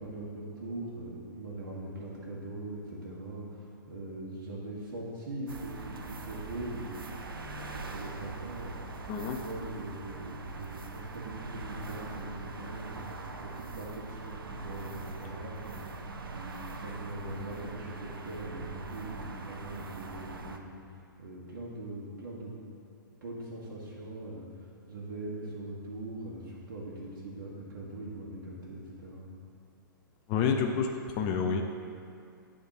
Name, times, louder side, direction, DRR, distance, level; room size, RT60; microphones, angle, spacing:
voice 1, 0.0-20.7 21.2-22.6 23.2-24.4 24.9-29.3, right 1 dB, 65° right, -6 dB, 1.4 m, -41 dB
sound 1, 5.5-20.6, right 3 dB, 85° right, 0.6 m, -42 dB
voice 2, 9.1-9.4 30.3-30.9 31.2-31.6, left 6 dB, 35° left, 3 dB, 0.5 m, -28 dB
10.0 x 3.6 x 4.0 m, 2.3 s
hypercardioid pair, 115°, 11 cm